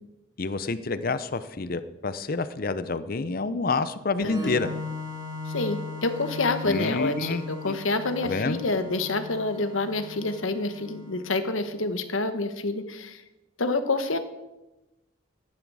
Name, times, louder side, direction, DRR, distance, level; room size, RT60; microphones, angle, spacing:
voice 1, 0.4-4.7 6.6-7.8 8.2-8.6, left 3 dB, 45° left, 13 dB, 0.7 m, -28 dB
voice 2, 4.2-4.6 5.5-13.2 13.6-14.2, left 3 dB, 90° left, 9 dB, 1.2 m, -28 dB
Organ, 4.2-11.7, left 3 dB, 20° right, 3.5 m, -38 dB
14.0 x 10.5 x 4.8 m, 1.0 s
head